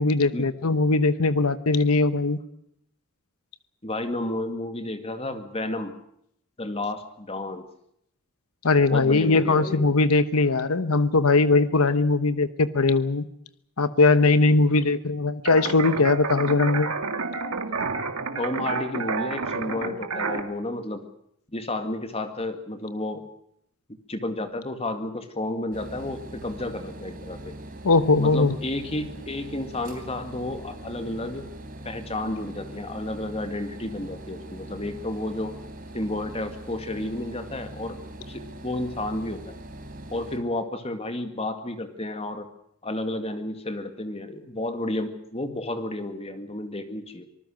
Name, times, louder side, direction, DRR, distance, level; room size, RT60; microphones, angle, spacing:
voice 1, 0.0-2.4 8.6-13.2 13.8-16.9 27.8-28.5, left 3 dB, 85° left, 12 dB, 1.0 m, -20 dB
voice 2, 3.8-5.9 6.6-7.7 8.9-9.9 18.4-21.0 21.5-23.3 24.1-27.6 28.2-31.4 31.9-35.6 35.9-38.0 38.3-39.5 40.1-42.4 42.8-47.3, left 1 dB, 25° left, 7 dB, 2.1 m, -31 dB
sound 1, 15.4-20.4, right 4 dB, 80° right, 2.1 m, -29 dB
sound 2, 25.7-40.4, right 1 dB, 40° right, 4.0 m, -41 dB
25.5 x 19.5 x 6.5 m, 0.72 s
head